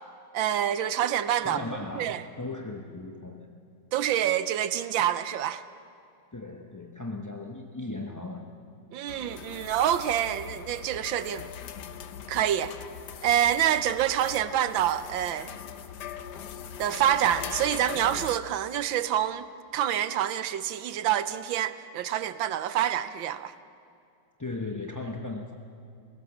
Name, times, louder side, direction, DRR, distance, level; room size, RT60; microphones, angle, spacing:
voice 1, 0.3-1.6 2.0-2.2 3.9-5.6 8.9-11.5 12.3-12.7 13.2-15.5 16.8-19.5 19.7-23.5, right 11 dB, 80° right, 1.5 m, -27 dB
voice 2, 1.4-3.6 6.3-8.5 24.4-25.5, left 2 dB, 15° left, 0.6 m, -37 dB
sound 1, 9.1-18.4, left 9 dB, 60° left, 1.4 m, -41 dB
29.0 x 17.0 x 7.2 m
omnidirectional pair, 2.2 m